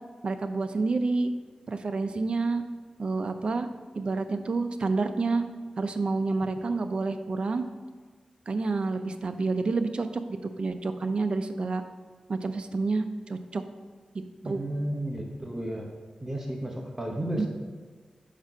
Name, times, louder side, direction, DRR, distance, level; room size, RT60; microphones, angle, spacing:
voice 1, 0.2-1.3 1.7-2.6 3.0-3.7 4.0-5.4 5.8-7.6 8.5-11.8 12.3-13.6 14.4-14.6 17.4-17.5, right 3 dB, 50° right, 8 dB, 0.4 m, -28 dB
voice 2, 14.4-15.9 16.2-17.5, right 1 dB, 15° right, 0 dB, 0.8 m, -33 dB
5.2 x 4.1 x 6.0 m, 1.5 s
wide cardioid pair, 120°, 2 cm